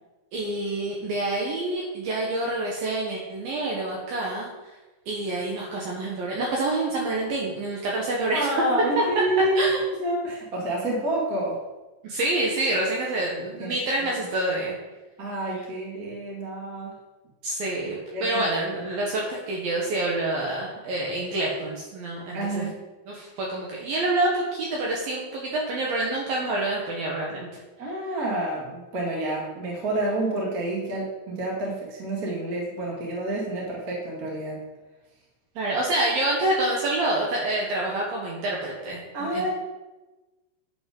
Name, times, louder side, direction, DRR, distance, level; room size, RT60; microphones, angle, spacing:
voice 1, 0.3-4.8 5.1-8.6 9.6-9.8 12.0-14.8 17.4-22.7 23.1-27.5 35.6-39.5, right 2 dB, 70° right, -3 dB, 2.3 m, -27 dB
voice 2, 8.3-11.6 13.6-13.7 14.2-14.3 15.2-16.9 18.1-18.2 18.8-18.9 22.3-22.8 27.8-34.6 39.1-39.5, right 1 dB, 50° right, -3 dB, 1.0 m, -28 dB
10.5 x 5.3 x 5.2 m, 1.2 s
omnidirectional pair, 5.7 m